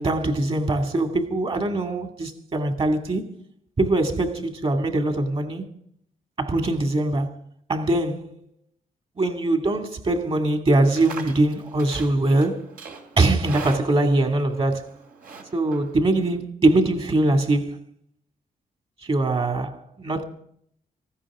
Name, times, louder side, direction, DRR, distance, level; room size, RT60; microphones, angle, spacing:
voice 1, 0.0-3.3 3.8-5.7 6.4-7.3 7.7-8.4 9.2-12.6 13.2-14.9 15.5-17.8 19.0-20.2, right 2 dB, 40° right, 2.4 m, -22 dB
Livestock farm animals working animals, 10.7-16.4, right 4 dB, 70° right, 2.9 m, -42 dB
19.0 x 15.5 x 3.7 m
cardioid pair, 125°, 15 cm